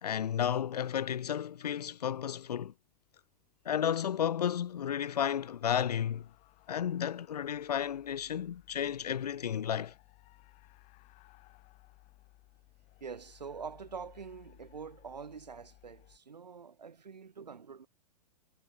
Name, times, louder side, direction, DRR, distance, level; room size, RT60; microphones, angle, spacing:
voice 1, 0.0-2.7 3.6-6.3 6.7-9.9, left 9 dB, 70° left, 1.0 m, -32 dB
sound 1, 2.7-16.2, left 20 dB, 35° left, 5.7 m, -62 dB
voice 2, 13.0-17.9, right 6 dB, 80° right, 6.5 m, -45 dB
hypercardioid pair, 115°, 21 cm